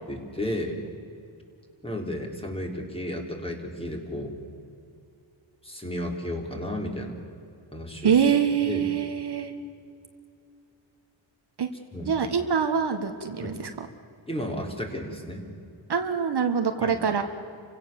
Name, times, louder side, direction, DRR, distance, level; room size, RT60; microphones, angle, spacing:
voice 1, 0.1-0.8 1.8-4.3 5.6-7.2 7.7-8.1 8.6-8.9 11.9-12.2 13.4-13.6 14.3-15.5 16.8-17.0, left 1 dB, 10° left, 1 dB, 3.9 m, -33 dB
voice 2, 8.0-9.5 11.6-11.7 12.1-13.9 15.9-17.2, right 7 dB, 60° right, 6 dB, 1.5 m, -24 dB
29.5 x 16.5 x 7.2 m, 2.6 s
wide cardioid pair, 95°, 46 cm